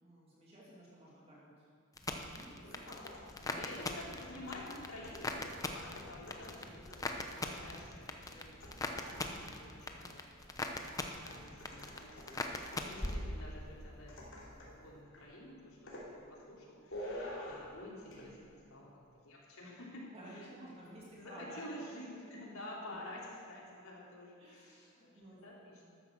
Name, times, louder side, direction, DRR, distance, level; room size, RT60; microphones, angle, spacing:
voice 1, 0.0-1.7 2.1-2.9 3.3-3.6 9.6-10.1 20.1-21.6 21.9-22.4 22.9-23.0 24.4-25.4 25.8-25.9, right 1 dB, 30° right, -6 dB, 2.6 m, -54 dB
sound 1, 2.0-13.9 14.2-14.7, left 2 dB, 15° left, 0.8 m, -41 dB
sound 2, 2.6-9.7 11.2-13.3 14.1-14.8 15.1-15.4 15.9-16.1 16.9-17.8 18.1-18.3, left 1 dB, 65° left, 3.1 m, -50 dB
voice 2, 2.7-3.1 3.5-20.7 21.2-25.1 25.4-25.8, left 1 dB, 80° left, -5 dB, 3.8 m, -50 dB
13.0 x 10.0 x 6.5 m, 2.3 s
head